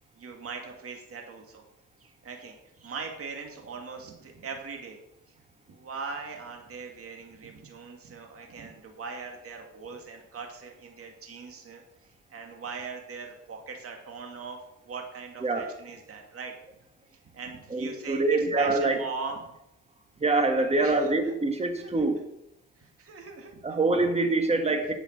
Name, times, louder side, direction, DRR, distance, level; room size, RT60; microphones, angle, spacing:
voice 1, 0.2-1.6 2.0-5.0 5.7-14.6 14.8-16.5 17.3-19.4 20.5-21.1 21.8-22.1 22.8-23.6, right 4 dB, 50° right, 2 dB, 2.4 m, -40 dB
voice 2, 15.4-15.7 17.7-19.0 20.2-22.2 23.6-24.9, right 2 dB, 20° right, 5 dB, 1.7 m, -25 dB
9.2 x 6.9 x 6.6 m, 0.84 s
cardioid pair, 90°, 30 cm